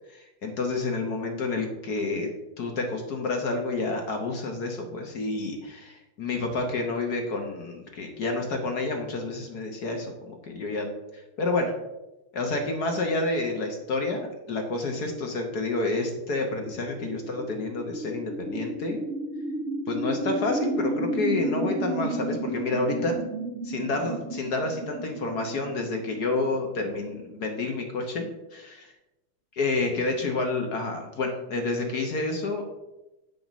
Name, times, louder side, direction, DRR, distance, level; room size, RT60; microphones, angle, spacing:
voice 1, 0.1-2.3 2.6-10.9 11.1-11.7 12.3-19.0 19.9-23.1 23.6-28.9 29.6-32.8, left 3 dB, 50° left, 3 dB, 1.4 m, -29 dB
sound 1, 16.1-27.7, right 2 dB, 60° right, 0.7 m, -33 dB
8.5 x 6.2 x 5.2 m, 0.97 s
omnidirectional pair, 2.4 m